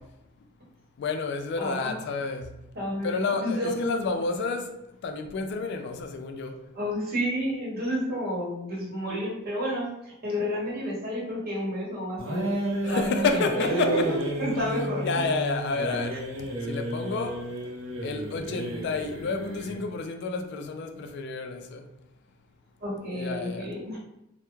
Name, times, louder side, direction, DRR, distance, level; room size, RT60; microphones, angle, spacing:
voice 1, 1.0-2.5 3.0-4.7 5.0-6.5 12.8-13.9 15.0-16.1 16.7-17.4 18.0-21.8 23.1-23.7, left 4 dB, 60° left, 0.3 m, -30 dB
voice 2, 1.6-2.0 2.7-4.0 6.7-12.5 12.8-15.1 16.1-16.2 22.8-24.0, equal, 50° right, 0.9 m, -30 dB
sound 1, 12.2-19.9, right 1 dB, 75° right, 0.6 m, -32 dB
2.2 x 2.1 x 3.0 m
head